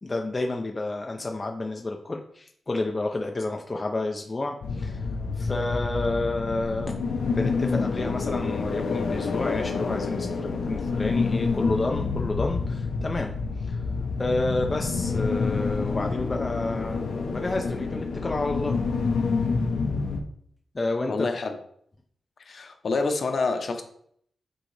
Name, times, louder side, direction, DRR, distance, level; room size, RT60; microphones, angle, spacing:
voice 1, 0.0-5.1 5.3-13.8 14.2-17.0 17.3-18.8 20.7-21.3, left 2 dB, 25° left, 2 dB, 0.4 m, -30 dB
sound 1, 4.6-20.2, left 4 dB, 85° left, 0.8 m, -28 dB
voice 2, 21.1-21.6 22.4-23.8, left 3 dB, 50° left, 6 dB, 0.8 m, -27 dB
7.7 x 3.7 x 3.3 m, 0.66 s
wide cardioid pair, 145°, 0 cm